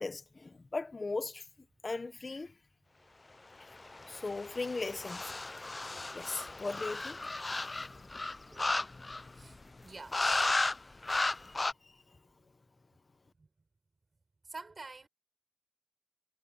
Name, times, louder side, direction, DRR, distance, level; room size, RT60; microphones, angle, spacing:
voice 1, 0.0-1.4 1.8-2.5 4.1-5.2 6.1-7.2 7.6-8.1 8.4-9.9 11.2-12.2, left 3 dB, 75° left, 1.4 m, -40 dB
sound 1, 3.8-9.4 10.1-10.8 11.0-11.7, left 2 dB, 55° left, 0.7 m, -34 dB
voice 2, 9.3-10.2 10.8-11.1 13.4-13.5 14.4-15.1, right 3 dB, 75° right, 5.3 m, -49 dB
cardioid pair, 40°, 0 cm